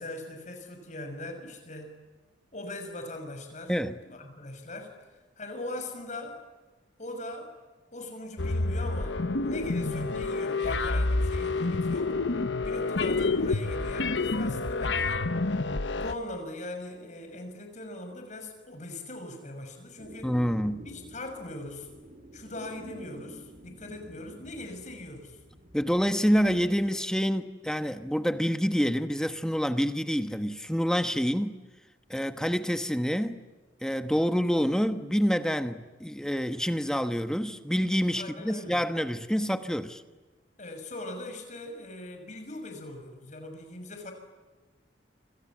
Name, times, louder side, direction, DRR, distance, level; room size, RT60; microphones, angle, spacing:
voice 1, 0.0-1.9 2.5-3.7 4.0-5.0 5.4-6.4 7.0-7.5 7.9-12.1 12.6-15.2 15.9-20.4 20.9-21.9 22.3-25.4 38.2-38.8 40.6-44.1, left 1 dB, 40° left, 6.3 m, -40 dB
sound 1, 8.4-16.1, left 3 dB, 80° left, 1.1 m, -28 dB
sound 2, 20.0-26.9, right 1 dB, 40° right, 4.9 m, -49 dB
voice 2, 20.2-20.8 25.7-31.6 32.1-33.4 33.8-40.0, equal, 5° left, 1.1 m, -27 dB
29.0 x 27.5 x 7.4 m
head